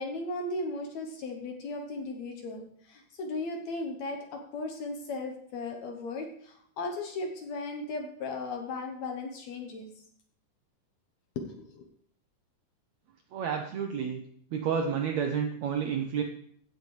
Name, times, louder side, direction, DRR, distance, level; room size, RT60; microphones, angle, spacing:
voice 1, 0.0-9.9 11.4-11.9, left 2 dB, 65° left, 3 dB, 1.9 m, -36 dB
voice 2, 13.3-14.2 14.5-16.2, right 7 dB, 75° right, 4 dB, 1.6 m, -30 dB
16.0 x 6.8 x 3.2 m, 0.63 s
omnidirectional pair, 4.1 m